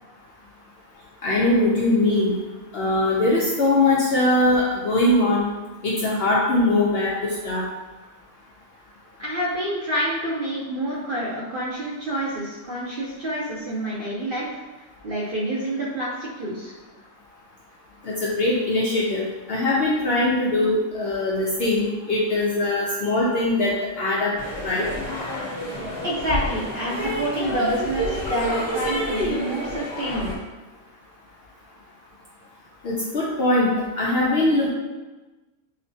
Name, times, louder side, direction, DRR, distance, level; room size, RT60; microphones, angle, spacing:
voice 1, 1.2-2.3 2.7-5.5 5.8-7.1 7.4-7.6 18.0-24.9 32.8-33.7 34.0-34.7, left 2 dB, 65° left, -5 dB, 0.6 m, -21 dB
voice 2, 9.2-14.5 15.0-16.7 26.0-30.4, right 1 dB, 55° right, -6 dB, 0.6 m, -28 dB
sound 1, 24.4-30.4, equal, 50° left, 1.4 m, -28 dB
5.0 x 2.1 x 2.6 m, 1.2 s
omnidirectional pair, 1.5 m